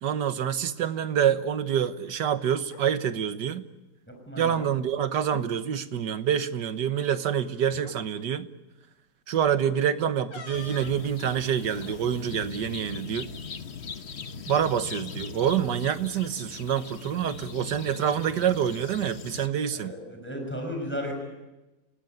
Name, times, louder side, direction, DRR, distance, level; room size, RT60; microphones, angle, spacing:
voice 1, 0.0-3.6 4.4-8.5 9.3-13.3 14.5-19.9, right 9 dB, 70° right, 1.7 m, -27 dB
sound 1, 2.6-2.9 4.1-5.0 5.3-5.5 5.8-6.1 7.0-7.1 7.8-8.0 10.3-11.0, left 6 dB, 80° left, 2.3 m, -45 dB
voice 2, 4.3-4.6 19.7-21.1, equal, 5° left, 6.2 m, -34 dB
sound 2, 10.5-19.5, left 5 dB, 40° left, 1.1 m, -40 dB
29.0 x 18.5 x 9.3 m
omnidirectional pair, 2.0 m